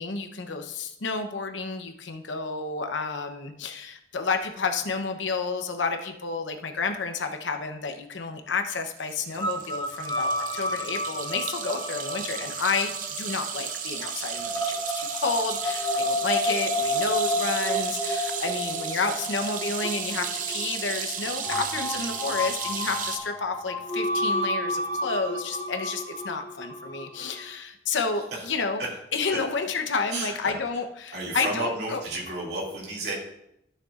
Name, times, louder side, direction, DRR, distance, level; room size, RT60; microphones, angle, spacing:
voice 1, 0.0-12.9 13.2-28.8 29.1-32.0, left 4 dB, 90° left, 5 dB, 0.9 m, -30 dB
sound 1, 9.0-23.2, right 7 dB, 45° right, 0.7 m, -34 dB
sound 2, 9.4-27.5, left 1 dB, 20° left, 0.7 m, -31 dB
voice 2, 30.1-30.6 31.1-33.1, right 2 dB, 65° right, -4 dB, 2.5 m, -32 dB
13.5 x 6.6 x 2.5 m, 0.79 s
head